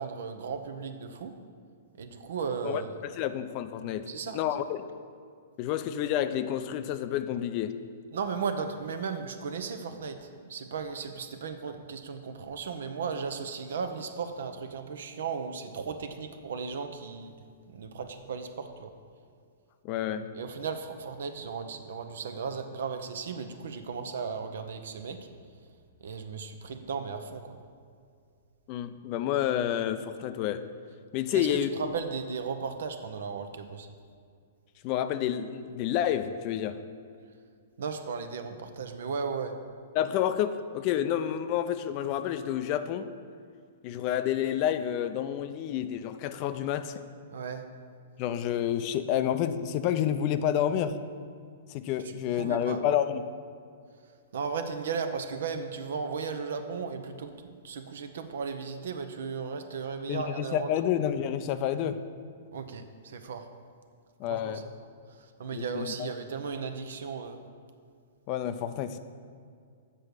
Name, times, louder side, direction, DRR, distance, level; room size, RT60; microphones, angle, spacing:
voice 1, 0.0-1.3 2.0-3.0 4.1-4.4 8.1-17.3 17.7-18.9 20.3-25.2 26.0-27.6 31.3-33.9 37.8-39.5 47.3-47.6 52.0-52.8 54.3-60.7 62.5-63.5 64.3-64.6 65.1-67.4, right 5 dB, 65° right, 8 dB, 0.7 m, -36 dB
voice 2, 2.6-4.1 4.3-4.9 5.6-7.8 19.8-20.3 28.7-30.7 31.1-31.7 34.8-36.8 39.9-43.1 43.8-47.0 48.2-51.0 51.7-53.2 60.1-62.0 64.2-64.6 65.5-66.1 68.3-69.0, left 10 dB, 40° left, 11 dB, 0.4 m, -29 dB
7.7 x 5.4 x 6.4 m, 2.2 s
figure-of-eight pair, 110°, 0 cm